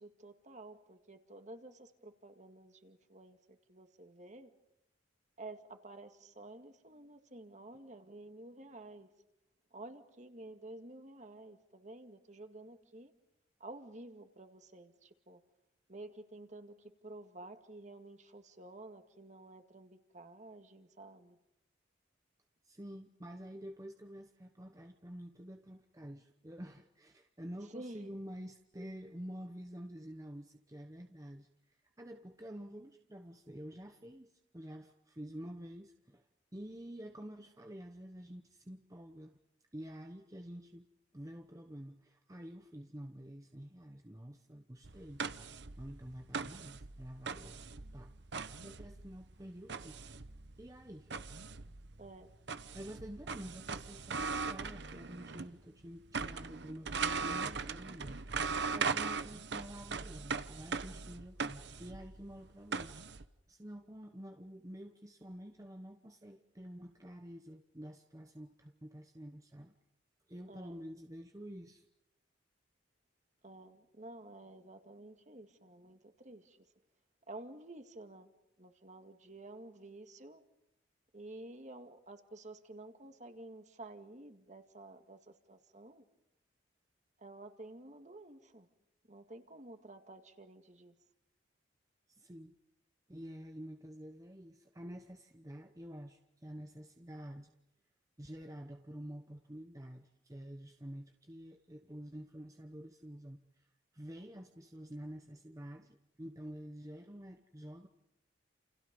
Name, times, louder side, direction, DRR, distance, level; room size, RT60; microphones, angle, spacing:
voice 1, 0.0-4.5 5.4-9.1 9.7-13.1 13.6-15.4 15.9-21.4 27.6-28.1 52.0-52.3 70.5-70.8 73.4-76.6 77.3-78.3 78.6-80.4 81.1-86.0 87.2-88.7 89.1-90.9, right 2 dB, 40° right, 7 dB, 2.1 m, -51 dB
voice 2, 22.6-36.3 36.5-39.3 39.7-40.9 41.1-45.2 45.8-47.6 47.9-48.2 48.6-50.0 50.6-51.1 52.7-62.9 63.5-69.7 70.3-71.8 92.1-92.5 93.1-97.5 98.2-103.7 103.9-107.9, equal, 20° right, 5 dB, 1.0 m, -49 dB
sound 1, 44.8-55.6 55.8-63.2, right 5 dB, 65° right, 1.0 m, -40 dB
29.5 x 29.0 x 5.3 m, 0.85 s
head